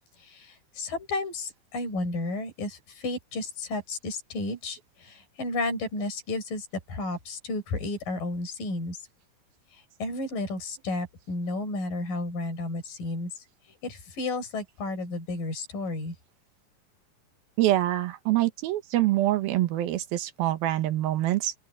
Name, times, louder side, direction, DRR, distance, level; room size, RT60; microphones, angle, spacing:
voice 1, 0.2-9.1 9.7-13.5 13.8-16.2, left 2 dB, 65° left, 8.4 m, -32 dB
voice 2, 17.6-21.5, right 15 dB, 80° right, 3.1 m, -25 dB
open air
omnidirectional pair, 4.3 m